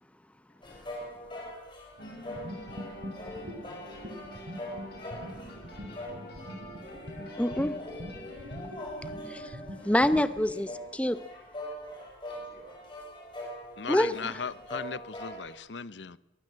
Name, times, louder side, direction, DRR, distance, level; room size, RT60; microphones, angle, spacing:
sound 1, 0.6-15.6, left 1 dB, 30° left, 7.3 m, -43 dB
sound 2, 2.0-11.0, left 1 dB, 60° left, 5.8 m, -48 dB
sound 3, 2.3-10.6, equal, 55° right, 2.9 m, -44 dB
voice 1, 5.2-6.4 8.6-8.8 12.3-12.9, right 1 dB, 10° right, 4.1 m, -59 dB
voice 2, 7.4-7.7 9.3-9.6 9.8-11.2 13.9-14.3, left 1 dB, 5° left, 0.7 m, -26 dB
voice 3, 13.8-16.2, left 5 dB, 80° left, 0.8 m, -37 dB
23.0 x 16.0 x 7.5 m
head